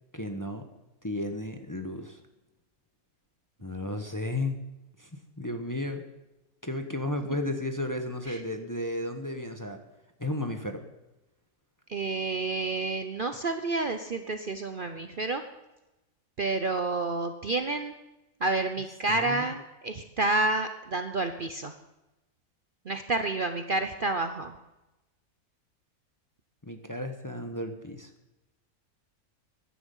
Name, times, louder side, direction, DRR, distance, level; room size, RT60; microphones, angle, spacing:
voice 1, 0.1-0.7 1.0-2.2 3.6-4.6 5.0-5.1 5.4-6.0 6.6-9.8 10.2-10.8 19.1-19.5 26.6-28.1, left 1 dB, 15° left, 6 dB, 1.0 m, -33 dB
voice 2, 11.9-15.4 16.4-17.9 18.4-21.7 22.9-24.5, right 2 dB, 45° right, 8 dB, 0.8 m, -29 dB
16.0 x 11.5 x 5.5 m, 0.98 s
omnidirectional pair, 1.5 m